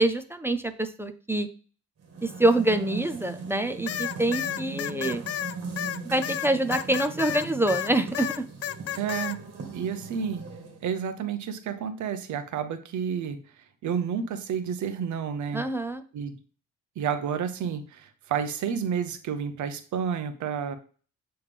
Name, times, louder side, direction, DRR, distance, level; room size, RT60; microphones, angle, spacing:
voice 1, 0.0-1.5 2.2-5.2 6.0-8.4 15.5-16.0, right 1 dB, 10° right, 9 dB, 0.6 m, -25 dB
sound 1, 2.0-10.9, right 4 dB, 50° right, 1.8 m, -40 dB
sound 2, 3.9-9.4, left 11 dB, 55° left, 0.4 m, -31 dB
voice 2, 9.0-9.4 9.7-10.4 10.8-13.4 13.8-15.6 16.1-16.4 17.0-20.8, right 7 dB, 75° right, 9 dB, 1.0 m, -30 dB
8.4 x 3.4 x 3.5 m, 0.39 s
cardioid pair, 90°, 30 cm